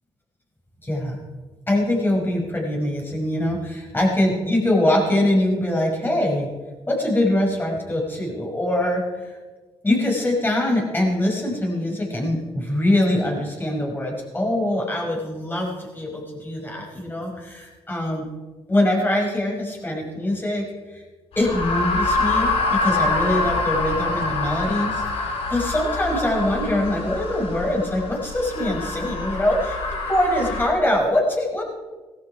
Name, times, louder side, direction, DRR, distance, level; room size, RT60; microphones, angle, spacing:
voice 1, 0.8-1.2 1.7-6.5 6.9-9.4 9.8-18.3 18.7-20.6 20.9-21.0 21.4-31.6, left 1 dB, 20° left, -1 dB, 5.8 m, -23 dB
sound 1, 21.3-30.7, left 3 dB, 75° left, 3.5 m, -25 dB
17.0 x 14.5 x 4.8 m, 1.3 s
cardioid pair, 75°, 10 cm